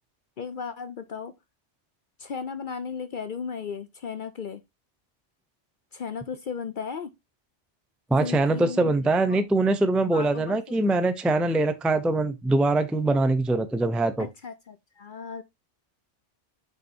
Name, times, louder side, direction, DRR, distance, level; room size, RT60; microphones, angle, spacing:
voice 1, 0.4-1.3 2.2-4.6 5.9-7.1 8.2-8.9 9.3-9.4 10.1-10.8 14.2-15.4, left 6 dB, 50° left, 0.7 m, -35 dB
voice 2, 8.1-14.3, right 2 dB, ahead, 0.4 m, -23 dB
7.7 x 5.4 x 2.7 m
omnidirectional pair, 1.3 m